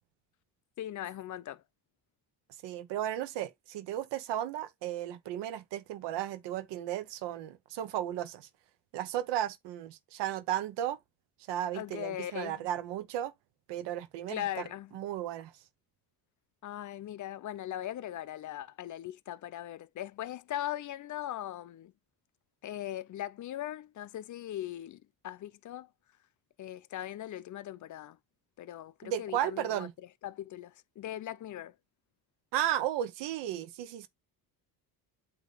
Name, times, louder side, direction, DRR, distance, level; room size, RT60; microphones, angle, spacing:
voice 1, 0.8-1.6 11.7-12.6 14.3-15.0 16.6-21.9 22.6-25.9 26.6-28.2 28.6-29.9 30.2-31.7, left 12 dB, 45° left, 0.5 m, -39 dB
voice 2, 2.6-8.5 8.9-11.0 11.5-13.3 13.7-14.7 14.9-15.5 29.0-29.9 32.5-34.1, right 11 dB, 85° right, 1.0 m, -34 dB
8.4 x 2.9 x 4.0 m
cardioid pair, 110°, 41 cm